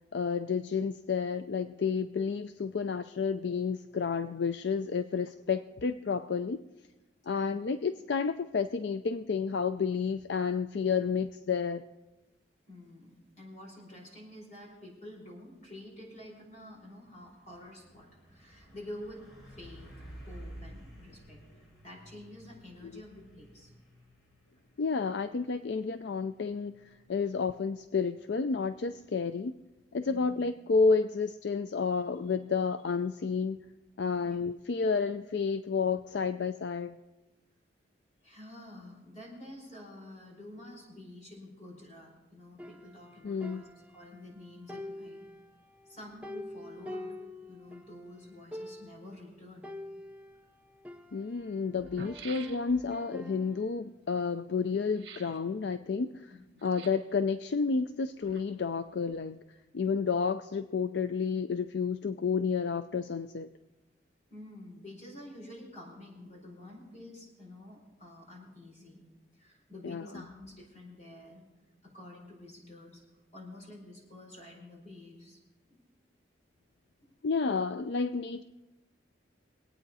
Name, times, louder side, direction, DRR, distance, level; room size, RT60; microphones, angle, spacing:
voice 1, 0.1-6.6 7.3-11.8 24.8-29.6 29.9-33.6 34.0-37.0 43.2-43.6 51.1-56.3 56.6-59.4 59.7-63.5 69.8-70.0 77.2-78.4, left 5 dB, 65° left, 10 dB, 0.4 m, -30 dB
voice 2, 7.3-7.6 12.7-19.9 20.3-23.7 30.0-30.3 34.2-34.4 38.2-43.6 43.9-45.2 45.9-47.1 47.5-49.7 56.3-56.6 64.3-69.0 69.3-71.4 71.8-73.0 73.3-75.4 75.7-75.8 77.0-77.1, left 1 dB, 40° left, -2 dB, 4.6 m, -49 dB
Truck, 15.6-29.7, right 1 dB, 90° left, 4.7 m, -54 dB
sound 1, 42.6-44.3 44.7-48.0 48.2-48.3 48.5-49.1 49.6-51.6 52.0-53.7, left 1 dB, 10° right, 0.6 m, -46 dB
sound 2, 50.4-50.5 51.4-51.5 51.7-53.0 54.9-55.4 56.6-57.1 58.0-58.8 59.1-59.2, right 5 dB, 60° right, 1.8 m, -48 dB
23.0 x 9.0 x 4.1 m, 1.1 s
head